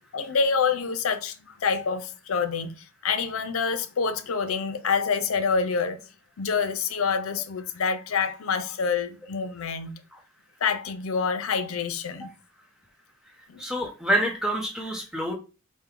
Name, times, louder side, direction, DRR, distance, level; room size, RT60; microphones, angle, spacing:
voice 1, 0.1-2.7 3.0-6.0 6.4-9.9 10.6-12.3 13.5-13.6, left 5 dB, 90° left, 0.5 m, -27 dB
voice 2, 13.6-15.3, right 1 dB, 5° right, 0.9 m, -27 dB
4.3 x 2.2 x 3.7 m
head